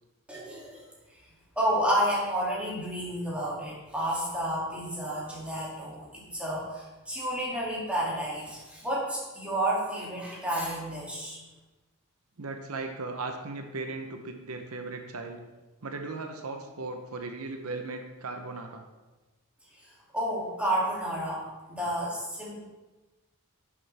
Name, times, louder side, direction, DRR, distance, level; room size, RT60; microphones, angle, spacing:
voice 1, 0.3-0.8 1.6-11.4 20.1-22.6, right 1 dB, 5° right, -6 dB, 2.6 m, -30 dB
voice 2, 12.4-15.4 15.8-18.8, right 3 dB, 80° right, 5 dB, 0.9 m, -37 dB
10.5 x 7.0 x 3.5 m, 1.1 s
head